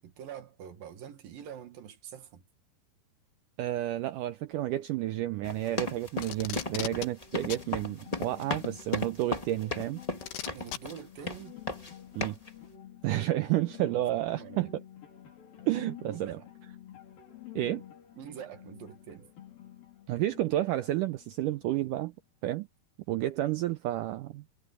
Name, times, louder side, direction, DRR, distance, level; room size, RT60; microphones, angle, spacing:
voice 1, 0.0-2.4 10.5-11.5 14.3-14.7 16.0-16.5 18.1-19.3, right 9 dB, 65° right, 3.3 m, -45 dB
voice 2, 3.6-10.0 12.2-12.4 13.0-14.7 15.7-16.4 17.6-17.8 20.1-22.1 22.4-22.7 23.1-24.4, right 14 dB, 90° right, 1.8 m, -31 dB
sound 1, 5.4-11.0 11.3-11.9 12.2-12.5, left 2 dB, 35° left, 0.5 m, -35 dB
Packing tape duct tape, 6.2-7.1 7.5-7.7 9.0-9.1 10.2-10.8 11.9-12.0, left 11 dB, 90° left, 3.6 m, -37 dB
sound 2, 7.1-22.1, left 10 dB, 65° left, 5.3 m, -50 dB
omnidirectional pair, 4.6 m